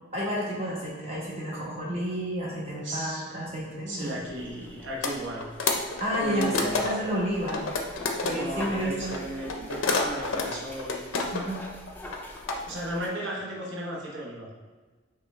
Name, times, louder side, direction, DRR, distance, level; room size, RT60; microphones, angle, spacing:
voice 1, 0.1-4.2 6.0-7.6 8.2-9.2 11.3-11.6, equal, 30° right, -6 dB, 1.1 m, -31 dB
voice 2, 2.8-3.3 3.9-5.4 6.2-6.9 8.3-11.0 12.7-14.5, right 1 dB, 60° right, -3 dB, 1.0 m, -35 dB
sound 1, 4.2-13.1, left 1 dB, 10° left, 0.3 m, -45 dB
sound 2, 5.0-5.2 5.4-7.1 7.4-8.3 9.1-11.6 11.9-12.6, left 3 dB, 75° left, 0.5 m, -28 dB
5.6 x 2.3 x 3.2 m, 1.3 s
head